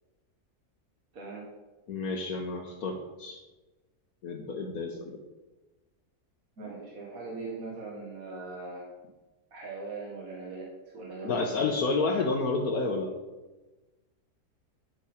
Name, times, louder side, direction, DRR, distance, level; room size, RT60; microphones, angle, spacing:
voice 1, 1.1-1.5 6.6-8.9 9.5-11.5, right 3 dB, 65° right, -3 dB, 2.1 m, -40 dB
voice 2, 1.9-3.4 4.2-5.2 11.2-13.1, left 3 dB, 75° left, 1 dB, 1.4 m, -30 dB
9.3 x 8.3 x 4.4 m, 1.1 s
omnidirectional pair, 1.6 m